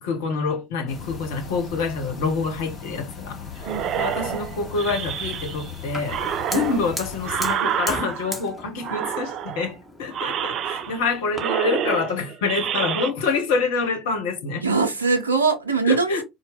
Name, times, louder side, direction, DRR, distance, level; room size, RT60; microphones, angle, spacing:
voice 1, 0.0-3.5 4.0-14.7 15.8-16.2, left 4 dB, 65° left, 0.9 m, -26 dB
sound 1, 0.9-7.6, left 6 dB, 45° left, 1.8 m, -38 dB
sound 2, 3.6-5.7 6.1-8.5 8.8-9.7 10.1-11.1 11.3-13.1, right 9 dB, 45° right, 0.4 m, -28 dB
Fire, 5.9-11.4, left 1 dB, 15° left, 1.2 m, -38 dB
voice 2, 14.6-16.2, right 4 dB, 90° right, 0.6 m, -22 dB
4.3 x 2.1 x 3.4 m
figure-of-eight pair, 65°, 0 cm